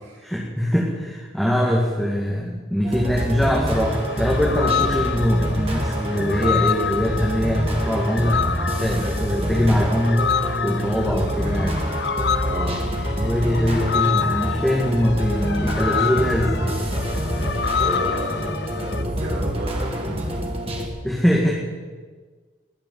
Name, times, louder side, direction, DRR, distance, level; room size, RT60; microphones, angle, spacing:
voice 1, 0.2-8.4 8.8-11.8 13.1-16.8 21.0-21.5, equal, ahead, -4 dB, 2.0 m, -22 dB
sound 1, 2.8-20.9, equal, 30° right, 2.1 m, -26 dB
sound 2, 3.7-19.0, left 7 dB, 60° left, 0.5 m, -28 dB
voice 2, 6.1-6.4 11.4-11.7 12.4-12.9 17.3-20.5, right 1 dB, 70° right, -12 dB, 6.1 m, -33 dB
20.5 x 6.9 x 8.1 m, 1.4 s
head